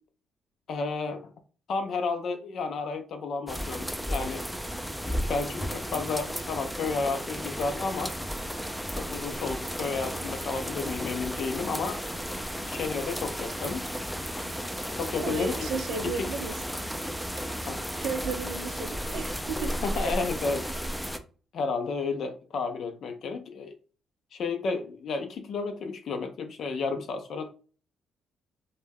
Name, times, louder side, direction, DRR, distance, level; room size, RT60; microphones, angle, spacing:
voice 1, 0.7-1.3 1.7-4.4 5.0-8.2 9.0-12.0 12.6-13.9 14.9-15.7 16.0-16.3 17.6-17.8 19.8-20.7 21.5-23.7 24.3-27.5, left 4 dB, 65° left, 0.4 m, -32 dB
sound 1, 3.5-21.2, equal, ahead, 0.4 m, -34 dB
voice 2, 15.2-16.6 18.0-20.1, right 4 dB, 80° right, 0.6 m, -34 dB
2.2 x 2.1 x 3.4 m
cardioid pair, 90°, 0 cm